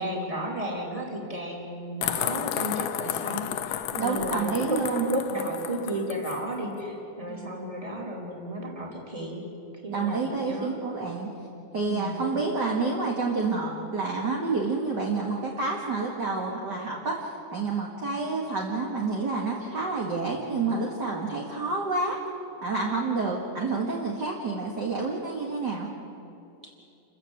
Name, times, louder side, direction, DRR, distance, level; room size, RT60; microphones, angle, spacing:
voice 1, 0.0-4.8 5.0-9.4 9.8-10.8 11.9-12.2, right 1 dB, 10° right, 0 dB, 3.3 m, -33 dB
sound 1, 2.0-6.4, left 11 dB, 80° left, 2.3 m, -32 dB
voice 2, 3.9-5.1 7.3-7.5 9.9-11.3 11.7-22.2 22.6-25.9, right 3 dB, 35° right, -2 dB, 2.2 m, -29 dB
28.5 x 15.0 x 8.2 m, 2.7 s
omnidirectional pair, 3.6 m